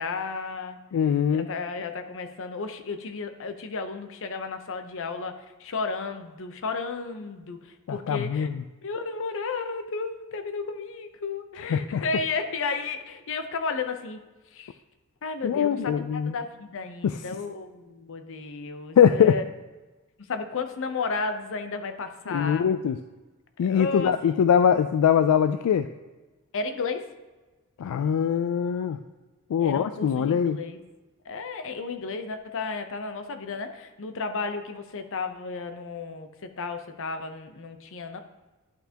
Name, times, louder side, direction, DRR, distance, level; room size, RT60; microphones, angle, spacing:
voice 1, 0.0-0.8 1.3-5.3 5.6-8.5 8.8-14.3 14.5-14.7 15.2-19.4 20.2-22.7 23.6-24.1 26.5-27.1 29.6-30.8 31.3-38.2, left 4 dB, 60° left, 8 dB, 0.7 m, -33 dB
voice 2, 0.9-1.5 7.9-8.6 11.6-12.0 15.4-16.3 17.0-17.2 19.0-19.3 22.3-23.0 23.6-25.9 27.8-29.0 29.5-30.6, left 8 dB, 80° left, 10 dB, 0.3 m, -22 dB
11.5 x 5.7 x 2.9 m, 1.2 s
head